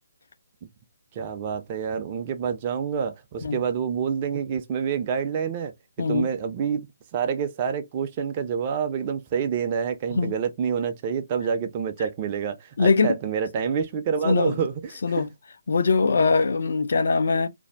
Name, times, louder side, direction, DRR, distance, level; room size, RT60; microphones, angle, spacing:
voice 1, 1.2-5.7 6.1-6.9 7.1-15.3, right 7 dB, 30° right, 0.4 m, -27 dB
voice 2, 6.0-6.3 10.1-10.4 12.8-13.2 14.2-14.6 15.0-15.3 15.7-17.5, left 4 dB, 55° left, 0.4 m, -22 dB
2.6 x 2.1 x 3.3 m
figure-of-eight pair, 140°, 0 cm